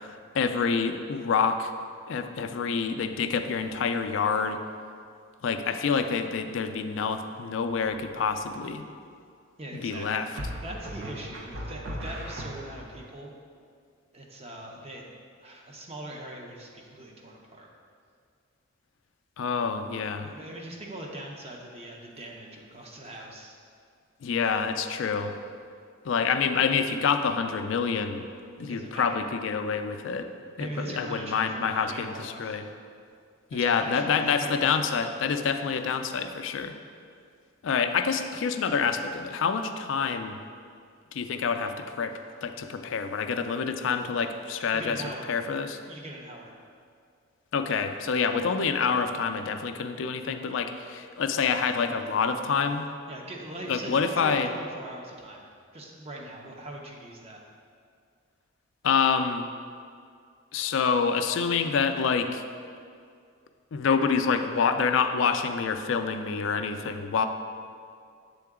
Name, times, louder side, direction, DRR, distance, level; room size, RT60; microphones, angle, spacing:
voice 1, 0.0-1.7 2.1-4.6 5.4-8.8 9.7-10.3 19.4-20.3 24.2-25.3 26.0-28.2 28.6-30.3 30.6-32.7 33.5-36.8 37.6-40.4 41.1-42.1 42.4-45.8 47.5-52.9 53.7-54.5 58.8-59.4 60.5-62.4 63.7-67.3, left 5 dB, 65° left, 8 dB, 0.3 m, -27 dB
sound 1, 7.7-8.2 10.4-13.0, equal, 75° right, 0.8 m, -38 dB
voice 2, 9.6-13.3 14.1-15.1 15.4-17.7 20.2-23.5 28.7-29.3 30.6-32.6 33.5-34.7 44.7-45.3 45.9-46.6 53.1-55.4 55.7-57.4, right 1 dB, 30° right, 0 dB, 0.7 m, -41 dB
7.6 x 3.8 x 3.6 m, 2.2 s
head